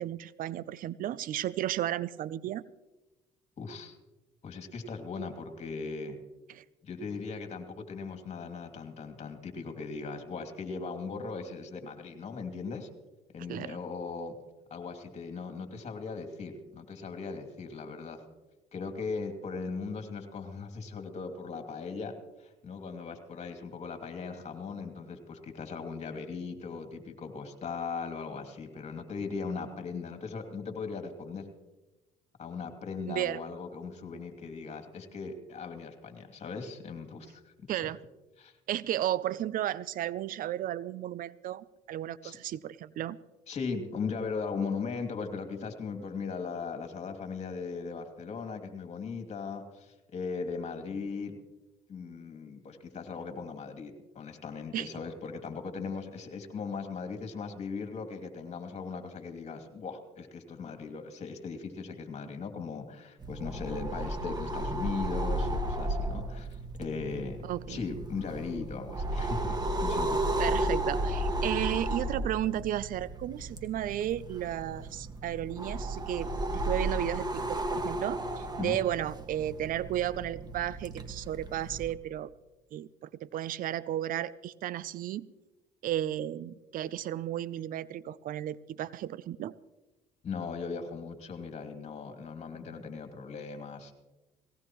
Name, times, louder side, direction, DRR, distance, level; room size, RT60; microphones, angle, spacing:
voice 1, 0.0-2.6 6.5-6.6 13.5-13.8 33.1-33.4 37.7-38.0 38.7-43.2 54.7-54.9 67.4-67.8 70.4-82.3 82.7-85.3 85.8-89.5, right 12 dB, 60° right, 19 dB, 0.5 m, -34 dB
voice 2, 3.6-4.0 4.4-6.2 6.8-12.9 13.3-14.3 14.7-18.2 18.7-31.5 32.4-37.9 38.4-38.5 42.2-42.4 43.5-51.4 51.9-67.4 67.7-70.2 71.5-71.8 78.6-78.8 90.2-93.9, left 5 dB, 45° left, 6 dB, 2.6 m, -38 dB
sound 1, 63.2-81.9, right 1 dB, 25° right, 1.7 m, -34 dB
18.5 x 18.5 x 3.1 m, 1.1 s
supercardioid pair, 75°, 16 cm